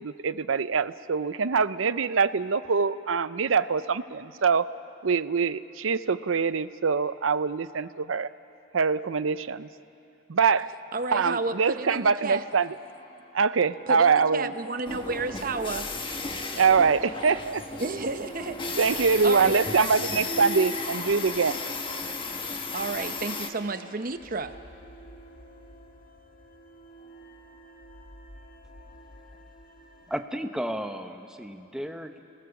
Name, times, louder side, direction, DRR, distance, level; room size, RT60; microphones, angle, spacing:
voice 1, 0.0-4.7 5.0-8.3 8.7-9.7 10.3-10.7 11.1-12.7 13.3-14.5 16.5-17.8 18.8-21.6, right 5 dB, 85° right, 14 dB, 0.6 m, -24 dB
voice 2, 10.9-12.4 13.9-15.9 17.8-18.8 19.2-19.9 22.7-24.5, right 3 dB, 45° right, 9 dB, 0.8 m, -31 dB
sound 1, 12.4-30.2, right 1 dB, 45° left, 1.7 m, -51 dB
sound 2, 14.9-23.5, left 3 dB, 25° left, 1.3 m, -34 dB
voice 3, 30.1-32.2, equal, 5° right, 5 dB, 1.0 m, -34 dB
29.5 x 19.0 x 7.1 m, 2.7 s
head